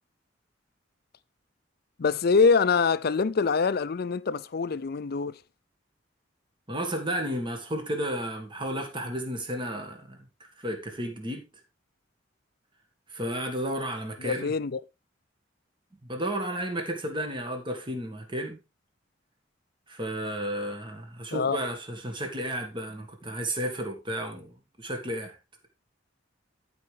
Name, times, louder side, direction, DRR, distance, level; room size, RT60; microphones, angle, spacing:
voice 1, 2.0-5.4 14.2-14.8 21.3-21.6, left 5 dB, 55° left, 0.5 m, -24 dB
voice 2, 6.7-11.5 13.1-14.5 16.0-18.6 19.9-25.4, right 1 dB, 25° right, 1.8 m, -33 dB
14.0 x 5.0 x 3.4 m
head